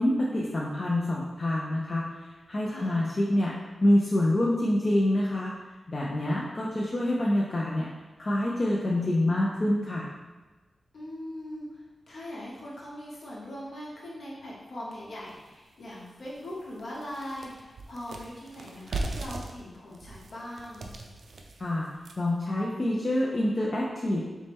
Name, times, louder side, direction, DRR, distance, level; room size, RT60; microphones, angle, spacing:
voice 1, 0.0-2.1 2.5-3.5 3.8-5.5 5.9-7.9 8.2-10.1 21.6-21.9 22.2-24.2, left 1 dB, 30° left, -4 dB, 0.4 m, -26 dB
voice 2, 2.7-3.2 10.9-11.6 12.1-20.9, left 1 dB, 55° left, -6 dB, 1.1 m, -41 dB
sound 1, 15.3-15.4 15.9-16.0 16.4-22.4, right 2 dB, 75° right, 0.4 m, -39 dB
4.1 x 3.1 x 3.5 m, 1.2 s
wide cardioid pair, 180°, 0 cm